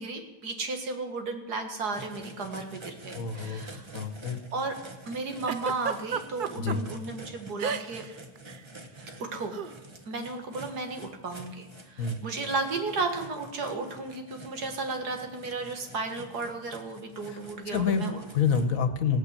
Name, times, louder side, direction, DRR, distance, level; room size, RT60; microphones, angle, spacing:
voice 1, 0.0-3.9 4.5-4.7 5.1-8.1 9.2-9.5 10.1-18.2, right 3 dB, 80° right, 5 dB, 2.3 m, -34 dB
sound 1, 1.9-18.6, right 1 dB, 20° right, 1.0 m, -48 dB
voice 2, 3.1-3.7 3.9-4.4 6.6-6.8 12.0-12.2 17.3-17.4 17.7-19.2, left 6 dB, 60° left, 9 dB, 1.5 m, -28 dB
Giggle, 5.5-6.8 7.6-8.1 8.4-8.6 9.5-9.7, right 6 dB, 60° right, 0.5 m, -31 dB
16.5 x 8.9 x 8.2 m, 1.1 s
omnidirectional pair, 1.7 m